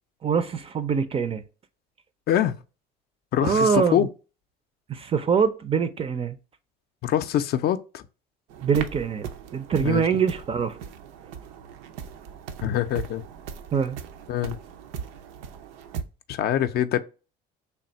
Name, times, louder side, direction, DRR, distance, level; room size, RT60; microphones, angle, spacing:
voice 1, 0.2-1.4 3.4-4.0 4.9-6.4 8.6-10.7 13.7-14.0, right 6 dB, 30° right, 0.4 m, -24 dB
voice 2, 3.3-4.1 7.0-8.0 9.8-10.2 12.6-13.2 14.3-14.6 16.3-17.0, left 11 dB, 50° left, 0.4 m, -24 dB
sound 1, 8.5-16.0, right 7 dB, 80° right, 0.5 m, -39 dB
3.4 x 2.4 x 4.0 m
supercardioid pair, 90°, 20 cm